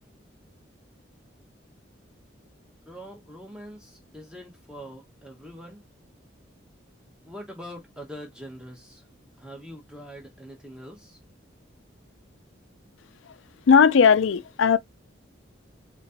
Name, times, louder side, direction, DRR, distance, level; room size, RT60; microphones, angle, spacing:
voice 1, 2.9-5.8 7.2-9.0 9.4-11.2, equal, 5° right, 1.3 m, -43 dB
voice 2, 13.7-14.8, left 6 dB, 80° left, 0.4 m, -17 dB
5.0 x 3.8 x 2.6 m
head